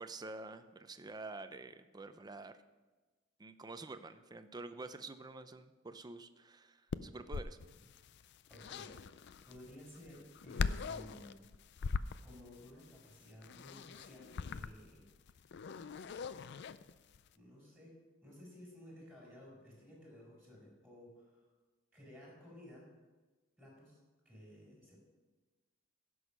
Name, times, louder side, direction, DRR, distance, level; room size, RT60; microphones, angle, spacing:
voice 1, 0.0-2.6 3.4-7.6, right 3 dB, 20° right, 10 dB, 0.6 m, -48 dB
sound 1, 6.9-17.3, left 5 dB, 60° left, 0.4 m, -42 dB
voice 2, 8.5-9.0 9.4-11.4 11.8-15.1 17.3-21.5 21.9-22.9 23.6-24.0 24.2-25.0, left 1 dB, ahead, -4 dB, 4.6 m, -55 dB
16.0 x 6.4 x 6.0 m, 1.2 s
head